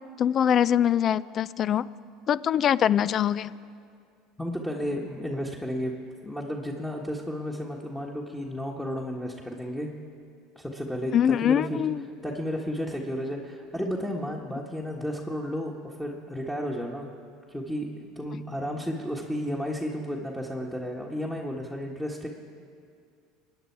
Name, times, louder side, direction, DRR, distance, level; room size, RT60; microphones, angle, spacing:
voice 1, 0.2-1.8 2.3-3.5 11.1-12.0, left 9 dB, 45° left, 19 dB, 0.4 m, -23 dB
voice 2, 4.4-6.0 6.2-9.9 10.5-11.1 11.4-11.8 12.2-17.1 17.5-22.3, equal, 5° left, -2 dB, 1.6 m, -32 dB
24.0 x 9.5 x 4.7 m, 2.3 s
hypercardioid pair, 80°, 0 cm